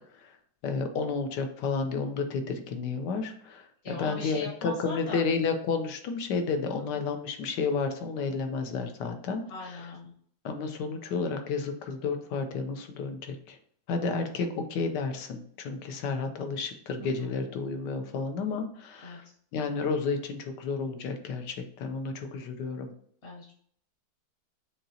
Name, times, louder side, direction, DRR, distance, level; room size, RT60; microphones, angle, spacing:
voice 1, 0.6-9.9 10.4-13.6 13.9-19.2 19.5-22.9, left 4 dB, 70° left, 6 dB, 1.3 m, -31 dB
voice 2, 3.8-5.2 6.8-7.0 9.5-10.1 17.0-17.4 19.0-19.2 23.2-23.5, left 2 dB, 50° left, -4 dB, 1.8 m, -40 dB
6.6 x 2.9 x 2.7 m, 0.62 s
omnidirectional pair, 2.0 m